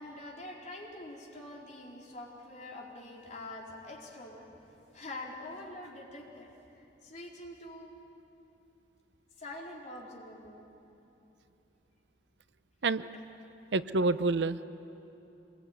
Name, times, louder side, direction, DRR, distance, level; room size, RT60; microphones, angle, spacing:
voice 1, 0.0-4.6 4.9-7.9 9.4-10.7 13.1-13.2, left 2 dB, 45° left, -2 dB, 4.3 m, -45 dB
voice 2, 13.7-14.6, right 3 dB, 70° right, 13 dB, 0.7 m, -28 dB
26.5 x 21.5 x 9.3 m, 3.0 s
head